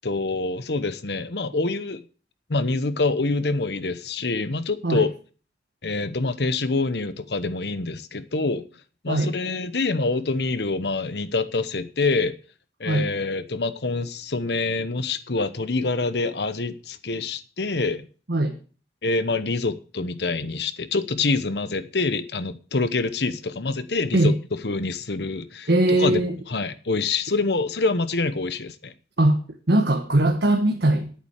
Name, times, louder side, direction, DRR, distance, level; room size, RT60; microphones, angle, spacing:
voice 1, 0.0-2.0 2.5-5.1 5.8-8.6 9.0-12.4 12.8-18.1 19.0-24.3 24.6-26.2 26.5-28.9, left 3 dB, 70° left, 1.0 m, -26 dB
voice 2, 25.7-26.4 29.2-29.4 29.7-31.1, right 1 dB, 75° right, 1.5 m, -20 dB
10.5 x 8.9 x 6.5 m
head